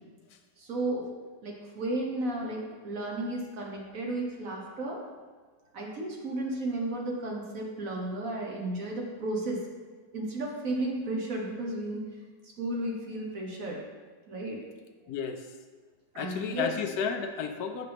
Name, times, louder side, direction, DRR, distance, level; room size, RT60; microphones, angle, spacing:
voice 1, 0.6-1.1 1.4-5.0 5.7-9.6 10.1-12.1 12.4-13.8 14.3-14.6 16.1-16.8, right 1 dB, 55° right, -1 dB, 1.3 m, -33 dB
voice 2, 15.1-15.5 16.1-17.9, left 6 dB, 70° left, 7 dB, 1.0 m, -32 dB
8.0 x 6.7 x 3.5 m, 1.4 s
omnidirectional pair, 1.9 m